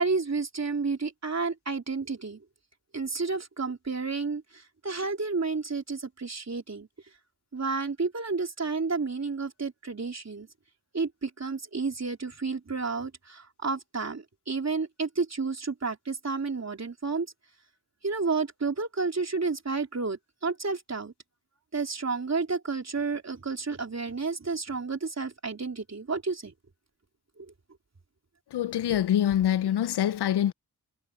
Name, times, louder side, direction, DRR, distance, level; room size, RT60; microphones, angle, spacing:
voice 1, 0.0-2.4 2.9-6.9 7.5-10.5 10.9-17.3 18.0-21.1 21.7-26.5, right 4 dB, 40° right, 3.5 m, -31 dB
voice 2, 28.5-30.5, left 11 dB, 80° left, 0.5 m, -25 dB
cardioid pair, 65°, 39 cm